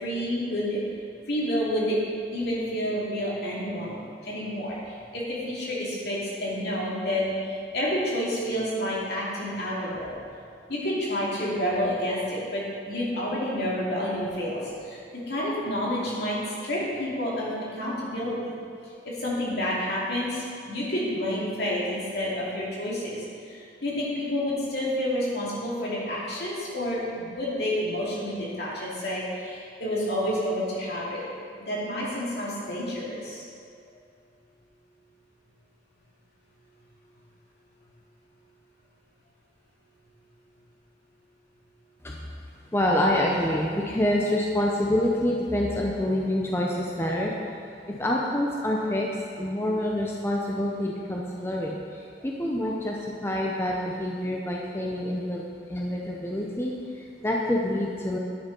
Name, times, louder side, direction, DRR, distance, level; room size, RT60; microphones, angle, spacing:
voice 1, 0.0-0.8 1.3-2.0 2.3-4.0 4.2-10.2 10.7-15.0 15.3-16.4 16.6-18.5 19.0-23.2 23.5-31.2 31.6-33.4, equal, 65° left, -6 dB, 2.6 m, -29 dB
voice 2, 42.7-47.3 47.9-49.1 49.3-55.4 55.7-58.2, left 1 dB, 15° left, -2 dB, 0.7 m, -27 dB
9.9 x 6.6 x 5.3 m, 2.3 s
head